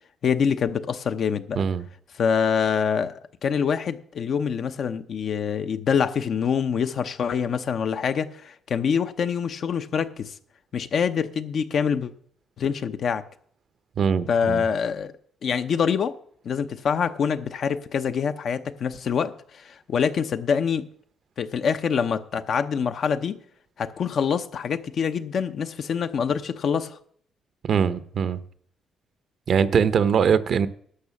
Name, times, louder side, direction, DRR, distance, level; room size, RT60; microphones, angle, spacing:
voice 1, 0.2-1.6 2.2-10.3 10.7-12.1 12.6-13.2 14.3-15.1 15.4-16.1 16.4-20.9 21.4-23.4 23.8-27.0, left 6 dB, 60° left, 0.8 m, -25 dB
voice 2, 14.0-14.6 27.6-28.4 29.5-30.7, right 7 dB, 60° right, 0.7 m, -22 dB
11.5 x 6.5 x 7.1 m
cardioid pair, 90°, 0 cm